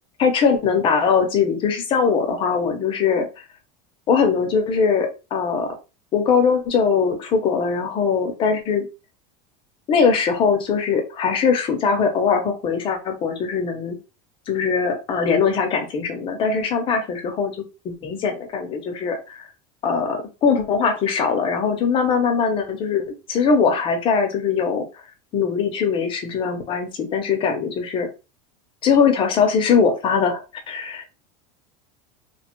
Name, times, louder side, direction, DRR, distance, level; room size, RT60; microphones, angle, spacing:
voice 1, 0.2-3.4 4.1-5.7 6.1-8.9 9.9-14.0 14.5-17.5 17.8-19.5 19.8-24.9 25.3-28.1 28.8-31.1, left 6 dB, 25° left, 4 dB, 0.5 m, -21 dB
2.8 x 2.1 x 2.9 m, 0.29 s
supercardioid pair, 165°, 20 cm